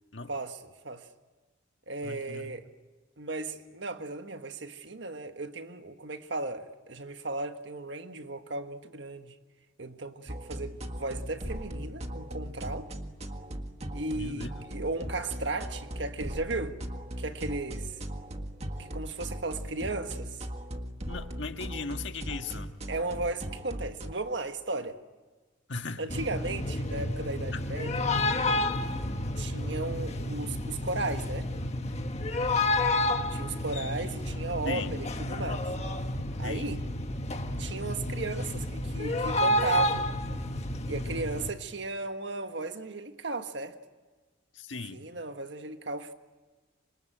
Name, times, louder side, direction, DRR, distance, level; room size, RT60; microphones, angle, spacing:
voice 1, 0.3-1.1 1.9-2.6 3.2-9.4 9.8-12.9 13.9-16.8 17.2-18.0 18.8-20.4 22.9-25.0 26.0-28.1 29.4-31.5 33.3-35.7 36.4-36.8 37.6-40.1 40.9-43.8 44.9-46.1, right 2 dB, 65° right, 1.6 m, -35 dB
voice 2, 2.0-2.5 14.1-14.6 21.1-22.7 25.7-26.1 27.5-27.6 34.6-35.0 36.4-36.7 44.5-45.0, left 4 dB, 70° left, 1.6 m, -38 dB
sound 1, 10.3-24.1, equal, 35° right, 1.7 m, -39 dB
sound 2, 26.1-41.5, left 1 dB, 35° left, 1.5 m, -30 dB
26.5 x 25.0 x 9.0 m
head